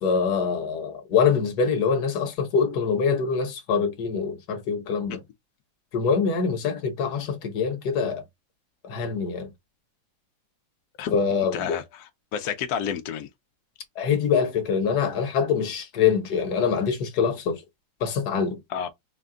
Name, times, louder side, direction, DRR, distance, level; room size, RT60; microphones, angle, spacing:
voice 1, 0.0-5.2 5.9-8.2 8.8-9.5 11.1-11.8 14.0-17.6 18.0-18.6, left 6 dB, 55° left, 1.3 m, -24 dB
voice 2, 11.5-13.3 18.7-18.9, left 8 dB, 80° left, 0.8 m, -30 dB
4.4 x 2.3 x 3.6 m
omnidirectional pair, 2.2 m